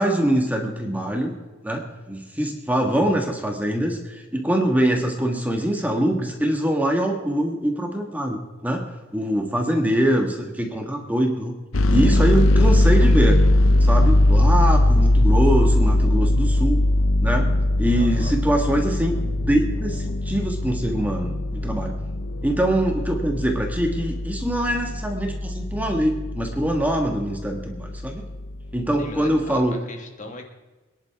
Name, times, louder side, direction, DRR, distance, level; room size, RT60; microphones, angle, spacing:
voice 1, 0.0-1.3 1.6-8.8 9.1-11.5 11.9-13.4 13.8-16.8 17.2-17.5 17.8-21.4 21.6-22.0 22.4-28.2 28.7-29.8, right 1 dB, 10° right, 2 dB, 1.7 m, -23 dB
sound 1, 11.7-29.3, left 1 dB, 75° left, 0.7 m, -20 dB
voice 2, 17.9-18.4 29.0-30.4, left 2 dB, 40° left, 3 dB, 1.8 m, -39 dB
24.5 x 11.0 x 3.6 m, 1.2 s
head